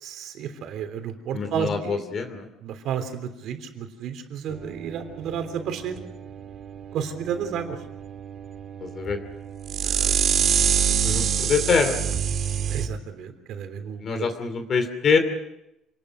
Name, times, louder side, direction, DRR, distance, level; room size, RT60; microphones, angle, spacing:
voice 1, 0.0-2.0 2.6-6.0 6.9-7.8 9.8-10.1 12.7-14.3, right 7 dB, 65° right, 7 dB, 3.4 m, -32 dB
voice 2, 1.3-2.5 8.8-9.2 11.0-12.2 14.0-15.2, left 5 dB, 40° left, 7 dB, 2.7 m, -24 dB
sound 1, 4.5-12.9, right 8 dB, 45° right, 1.8 m, -27 dB
27.5 x 20.0 x 6.3 m, 0.84 s
cardioid pair, 130°, 0 cm